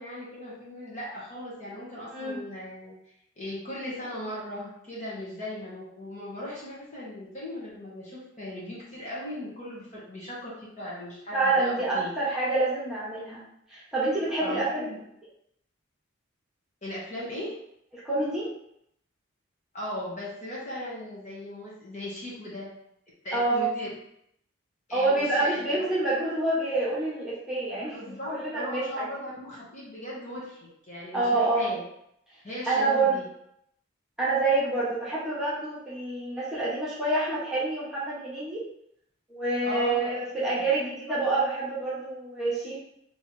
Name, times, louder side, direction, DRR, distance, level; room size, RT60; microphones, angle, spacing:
voice 1, 0.0-2.9 3.4-12.1 14.4-15.0 16.8-17.6 19.7-22.7 23.2-23.9 24.9-25.9 27.9-31.8 32.4-33.3 39.6-40.1 41.1-41.2, left 1 dB, 35° left, -7 dB, 1.3 m, -38 dB
voice 2, 2.1-2.4 11.3-13.4 13.7-14.9 18.0-18.5 23.3-23.6 24.9-28.0 28.3-29.1 31.1-31.7 32.7-33.2 34.2-38.6 39.3-42.8, right 2 dB, 5° right, -10 dB, 1.3 m, -27 dB
3.4 x 3.0 x 4.5 m, 0.75 s
head